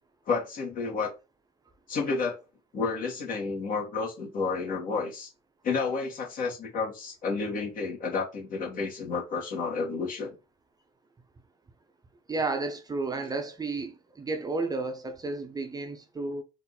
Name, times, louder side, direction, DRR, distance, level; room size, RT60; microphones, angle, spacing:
voice 1, 0.3-1.1 1.9-2.4 2.7-5.3 5.6-10.4, left 4 dB, 55° left, 1.9 m, -31 dB
voice 2, 12.3-16.4, right 3 dB, 20° right, 0.7 m, -32 dB
4.2 x 2.7 x 4.0 m
cardioid pair, 110°, 17 cm